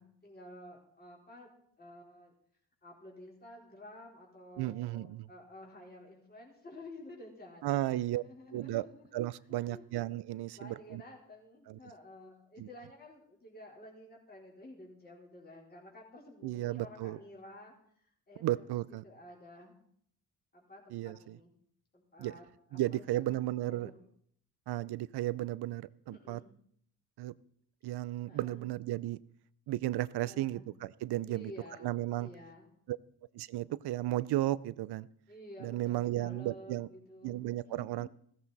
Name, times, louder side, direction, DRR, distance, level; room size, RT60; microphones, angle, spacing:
voice 1, 0.0-1.5 1.8-2.3 2.8-9.1 9.5-9.8 10.6-19.8 20.5-21.5 21.9-24.1 26.1-26.5 28.3-28.7 30.2-30.6 31.3-32.7 35.3-38.1, left 1 dB, 25° left, -3 dB, 4.1 m, -52 dB
voice 2, 4.6-5.3 7.6-8.2 8.5-8.8 9.1-11.0 11.7-11.8 12.6-12.7 16.4-17.2 18.4-19.0 20.9-21.4 22.2-22.3 22.7-23.9 24.7-26.4 27.2-27.3 27.8-29.2 29.7-31.5 31.8-32.3 32.9-33.0 33.3-35.1 35.6-36.9 37.2-38.1, right 15 dB, 70° right, 19 dB, 0.7 m, -34 dB
15.5 x 14.0 x 4.1 m, 0.67 s
cardioid pair, 90°, 40 cm